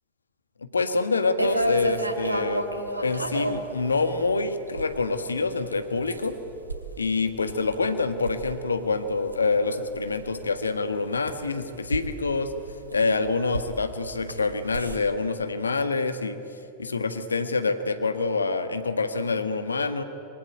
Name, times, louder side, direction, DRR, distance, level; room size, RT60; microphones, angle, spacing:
voice 1, 0.7-2.6 3.0-6.3 7.0-12.5 12.9-16.4 16.8-20.0, left 3 dB, 75° left, 9 dB, 1.6 m, -26 dB
sound 1, 1.4-15.0, right 1 dB, 85° right, 2.5 m, -33 dB
26.5 x 22.5 x 9.3 m, 2.9 s
figure-of-eight pair, 90°, 0 cm